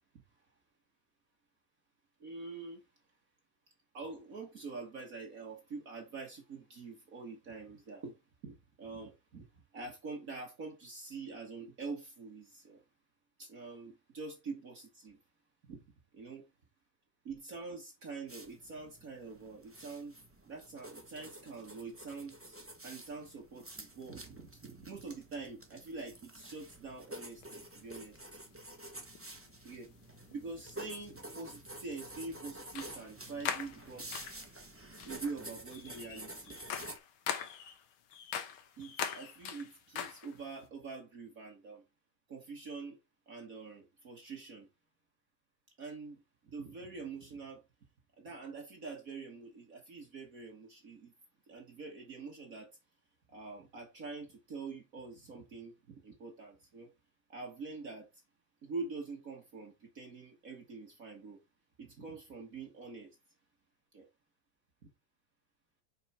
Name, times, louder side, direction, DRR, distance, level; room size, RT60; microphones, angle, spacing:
voice 1, 2.2-2.8 3.9-12.8 13.4-15.2 15.7-15.8 16.1-16.4 17.3-20.1 20.4-22.6 22.8-28.2 29.6-29.9 30.3-34.1 35.1-36.6 38.8-41.8 42.3-43.0 43.3-44.7 45.8-47.6 48.2-51.1 51.5-52.7 53.3-56.9 57.3-58.1 58.6-61.4 61.8-63.1 63.9-64.1, right 4 dB, 45° right, 1.7 m, -45 dB
sound 1, 18.3-37.0, right 1 dB, 10° right, 0.6 m, -50 dB
sound 2, 27.4-27.5 29.1-29.3 30.3-30.4 32.7-33.1 33.4-34.5 35.0-35.3 35.7-40.6, left 8 dB, 75° left, 1.8 m, -41 dB
6.6 x 5.4 x 4.4 m
omnidirectional pair, 2.4 m